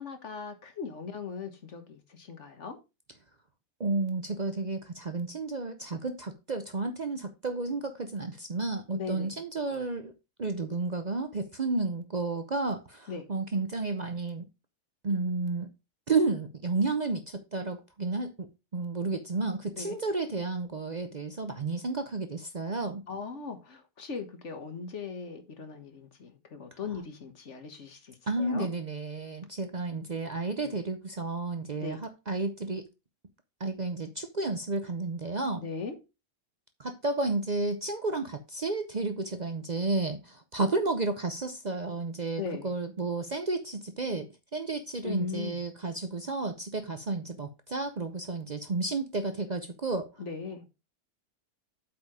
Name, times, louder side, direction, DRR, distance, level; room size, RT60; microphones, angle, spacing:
voice 1, 0.0-2.8 8.9-9.3 13.1-13.3 19.7-19.9 23.1-28.7 30.6-30.7 31.8-32.0 35.6-35.9 42.4-42.7 45.0-45.6 50.2-50.6, left 5 dB, 45° left, 1.5 m, -39 dB
voice 2, 3.8-10.1 10.4-14.5 15.0-15.7 16.1-18.5 18.7-23.0 28.3-32.9 33.6-35.7 36.8-50.1, right 3 dB, 60° right, 0.4 m, -32 dB
8.2 x 4.8 x 4.8 m
omnidirectional pair, 1.8 m